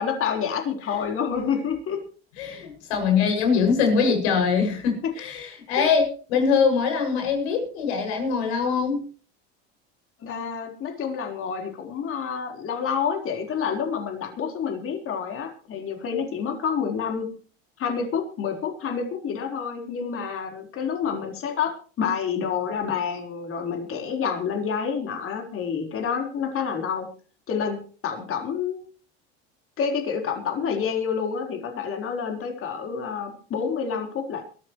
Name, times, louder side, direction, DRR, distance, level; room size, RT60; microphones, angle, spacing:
voice 1, 0.0-2.0 5.7-5.9 10.2-17.3 17.8-27.1 27.5-28.8 29.8-34.4, left 6 dB, 40° left, 3 dB, 4.4 m, -28 dB
voice 2, 2.4-9.1, left 5 dB, 85° left, 4 dB, 6.9 m, -23 dB
23.0 x 14.0 x 3.2 m, 0.39 s
supercardioid pair, 115°, 32 cm